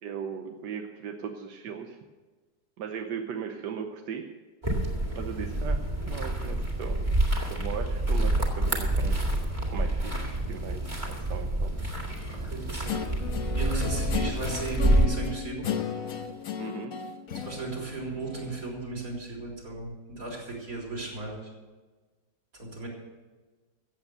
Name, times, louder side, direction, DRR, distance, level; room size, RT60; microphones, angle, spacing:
voice 1, 0.0-2.0 2.8-4.3 5.1-5.8 6.1-7.0 7.5-9.2 9.7-11.7 16.6-16.9, right 7 dB, 90° right, 4 dB, 1.5 m, -37 dB
sound 1, 4.6-15.0, right 1 dB, 25° right, 2.3 m, -28 dB
voice 2, 12.5-13.0 13.5-15.6 17.4-21.4 22.6-22.9, right 3 dB, 55° right, -2 dB, 4.2 m, -35 dB
Guitar, 12.9-18.7, left 8 dB, 60° left, 1.4 m, -35 dB
15.5 x 8.2 x 6.8 m, 1.3 s
omnidirectional pair, 1.8 m